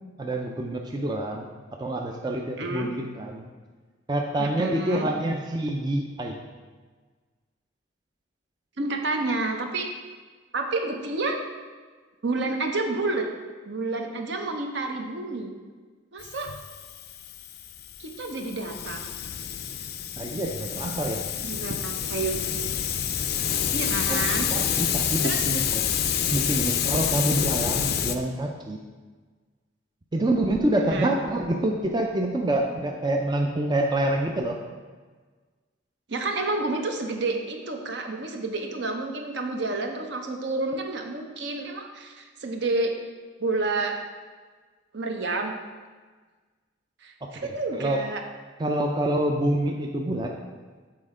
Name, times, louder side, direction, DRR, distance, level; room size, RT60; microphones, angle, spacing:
voice 1, 0.2-1.5 1.8-3.4 4.1-6.4 20.2-21.2 21.7-21.8 24.1-24.2 24.5-25.8 26.3-28.8 30.1-34.6 47.2-48.0 48.6-50.3, right 1 dB, 20° right, 1 dB, 0.4 m, -27 dB
voice 2, 2.6-2.9 4.4-5.1 8.8-9.9 10.5-11.4 12.2-13.3 13.6-15.5 16.1-16.5 18.0-19.0 21.4-22.4 23.7-24.5 25.2-25.4 30.9-31.1 36.1-42.9 43.4-44.0 44.9-45.5 47.0-48.2, right 3 dB, 60° right, 3 dB, 0.8 m, -29 dB
Hiss, 16.2-28.1, left 8 dB, 55° left, 0.4 m, -28 dB
7.7 x 4.2 x 4.9 m, 1.4 s
head